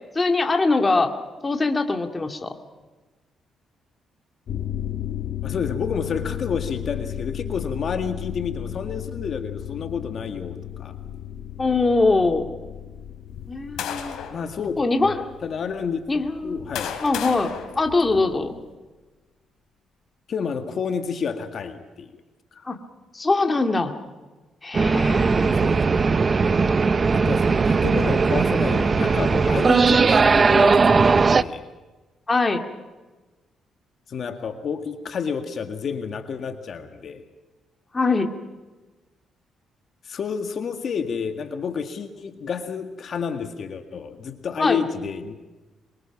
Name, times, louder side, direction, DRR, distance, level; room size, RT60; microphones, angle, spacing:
voice 1, 0.1-1.1 1.4-2.5 11.6-12.5 13.5-14.2 14.8-15.2 16.1-16.6 17.0-18.6 22.7-22.8 23.1-23.9 24.6-25.6 32.3-32.7 37.9-38.3 44.6-44.8, left 3 dB, 20° left, 5 dB, 2.3 m, -22 dB
sound 1, 4.5-16.6 16.9-17.0, left 11 dB, 70° left, 1.7 m, -34 dB
voice 2, 5.4-11.0 14.3-16.0 16.4-16.9 20.3-22.1 22.5-22.6 25.5-26.0 27.1-31.7 34.1-37.2 40.0-45.4, left 6 dB, 50° left, 7 dB, 1.9 m, -30 dB
sound 2, 13.3-14.4 15.2-15.3 16.2-18.6, left 8 dB, 90° left, 3.3 m, -34 dB
sound 3, 24.7-31.4, right 4 dB, 35° right, 0.8 m, -18 dB
27.0 x 24.0 x 6.0 m, 1.2 s
cardioid pair, 110°, 0 cm